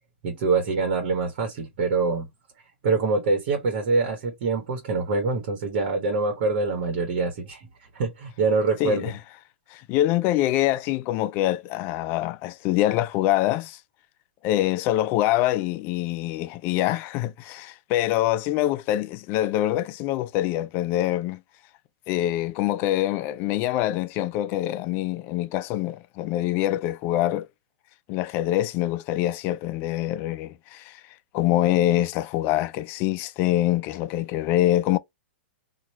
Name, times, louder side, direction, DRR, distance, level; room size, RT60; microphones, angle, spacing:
voice 1, 0.2-2.3 2.8-7.7 7.9-9.1, right 3 dB, 55° right, 1.2 m, -25 dB
voice 2, 8.8-9.1 9.7-13.8 14.4-21.4 22.1-27.5 28.1-31.0 31.3-35.0, left 14 dB, 35° left, 0.3 m, -25 dB
3.0 x 2.3 x 4.1 m
hypercardioid pair, 130°, 6 cm